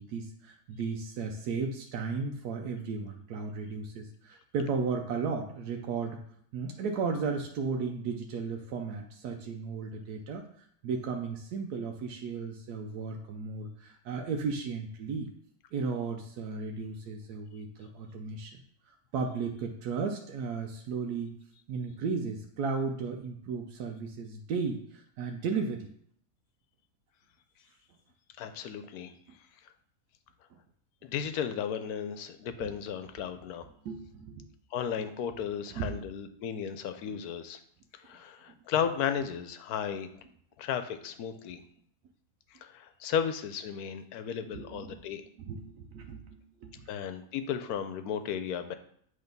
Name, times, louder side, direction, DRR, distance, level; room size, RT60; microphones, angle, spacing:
voice 1, 0.0-6.2 6.5-10.5 10.8-15.3 15.7-21.3 21.7-25.9 30.5-30.6 32.6-32.7 33.8-34.5 35.7-36.0 37.1-37.2 44.5-45.0 45.4-46.9, right 5 dB, 90° right, 3 dB, 1.2 m, -35 dB
voice 2, 28.4-29.1 31.0-33.7 34.7-37.6 38.0-40.1 40.6-41.6 42.6-45.2 46.9-48.7, left 8 dB, 80° left, 9 dB, 1.1 m, -34 dB
8.1 x 3.3 x 5.2 m, 0.65 s
omnidirectional pair, 1.6 m